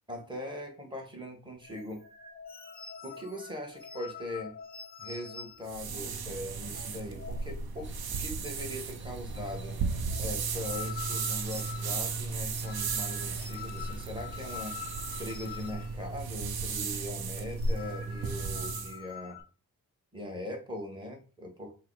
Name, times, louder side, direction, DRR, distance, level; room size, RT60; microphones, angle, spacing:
voice 1, 0.1-2.0 3.0-4.5 5.0-7.9 8.2-9.8 10.2-14.8 15.2-19.4 20.1-21.7, left 1 dB, 15° right, 1 dB, 1.1 m, -41 dB
sound 1, 1.6-7.6 7.9-8.0 8.3-8.8 9.1-16.5 16.7-17.0 17.4-19.4, left 7 dB, 25° left, 0.6 m, -46 dB
washing blackboard, 5.7-19.0, right 4 dB, 80° right, 0.7 m, -35 dB
sound 2, 7.8-15.7, right 4 dB, 35° right, 0.5 m, -51 dB
4.7 x 2.1 x 4.6 m, 0.35 s
wide cardioid pair, 155°, 36 cm